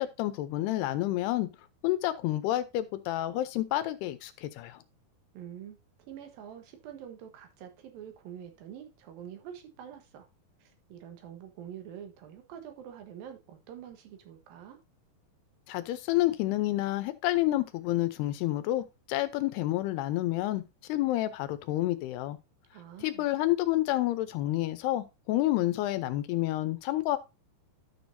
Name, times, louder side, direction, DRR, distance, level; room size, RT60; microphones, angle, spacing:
voice 1, 0.0-1.5 1.8-4.8 15.7-20.6 20.9-22.4 23.0-27.2, left 16 dB, 85° left, 2.8 m, -29 dB
voice 2, 5.3-10.3 10.6-14.8 22.7-23.3, right 9 dB, 70° right, 2.8 m, -46 dB
12.0 x 6.3 x 2.7 m
omnidirectional pair, 4.6 m